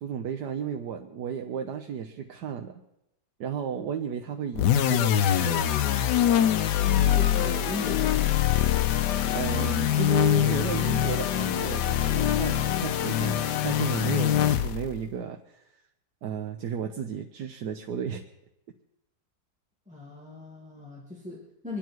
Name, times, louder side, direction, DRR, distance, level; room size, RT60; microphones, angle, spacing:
voice 1, 0.0-2.8 3.4-5.6 9.3-15.6 16.2-18.2, right 7 dB, 75° right, 4 dB, 1.5 m, -33 dB
sound 1, 4.6-15.0, left 10 dB, 80° left, 1.4 m, -24 dB
voice 2, 6.9-8.3 19.9-21.8, left 2 dB, 5° right, -4 dB, 2.3 m, -38 dB
26.0 x 10.5 x 4.6 m, 0.87 s
omnidirectional pair, 1.8 m